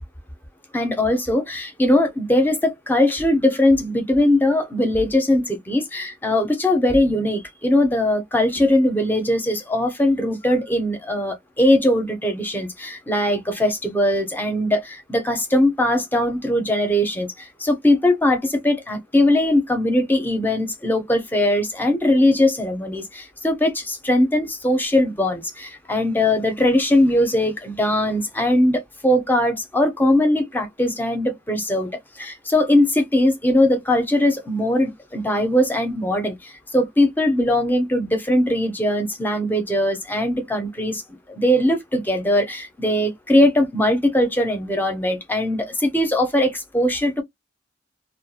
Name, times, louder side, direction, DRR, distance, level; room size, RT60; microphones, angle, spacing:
voice 1, 0.7-41.0 41.3-47.2, left 1 dB, 10° left, 0.5 m, -20 dB
2.3 x 2.2 x 2.6 m
head